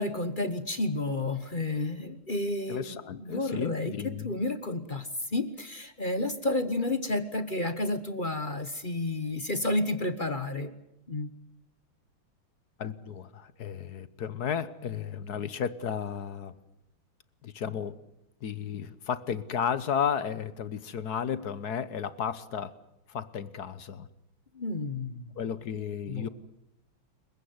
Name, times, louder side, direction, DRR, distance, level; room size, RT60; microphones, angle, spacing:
voice 1, 0.0-4.0 4.2-10.7 11.1-11.3 24.5-25.3 26.1-26.3, left 2 dB, 30° left, 11 dB, 1.1 m, -31 dB
voice 2, 2.7-4.3 12.8-16.5 17.4-18.0 18.4-22.7 23.1-24.1 25.4-26.3, left 7 dB, 55° left, 16 dB, 1.4 m, -33 dB
28.5 x 15.5 x 9.6 m, 0.85 s
omnidirectional pair, 2.4 m